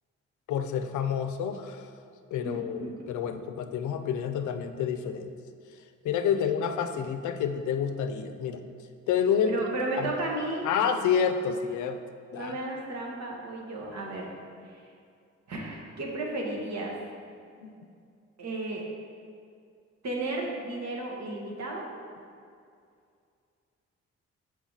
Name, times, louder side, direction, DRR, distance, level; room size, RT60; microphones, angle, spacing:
voice 1, 0.5-1.9 2.3-5.3 6.0-8.6 9.1-9.6 10.0-10.1 10.6-12.0 12.3-12.5 17.6-17.7, left 7 dB, 80° left, 8 dB, 0.5 m, -28 dB
voice 2, 2.4-3.1 6.3-6.5 9.4-10.7 12.3-14.3 14.7-14.8 15.5-17.0 18.4-18.8 20.0-21.9, right 2 dB, 65° right, -1 dB, 1.2 m, -34 dB
5.9 x 4.6 x 3.9 m, 2.3 s
cardioid pair, 60°, 29 cm